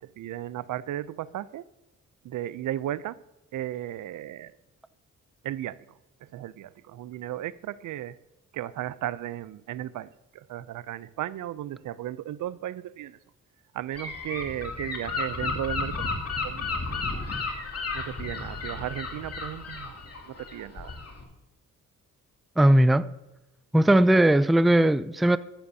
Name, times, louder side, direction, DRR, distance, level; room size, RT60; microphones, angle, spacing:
voice 1, 0.0-1.6 2.2-3.2 3.5-4.5 5.4-5.8 6.2-8.2 8.5-13.2 13.7-17.3 17.9-19.9 20.3-21.0 23.7-24.0, right 12 dB, 80° right, 0.5 m, -35 dB
Gull seagull / Wind, 14.0-21.2, left 3 dB, 50° left, 2.5 m, -33 dB
voice 2, 22.6-23.1 23.7-25.4, right 1 dB, ahead, 0.3 m, -19 dB
14.0 x 11.5 x 2.8 m
cardioid pair, 80°, 31 cm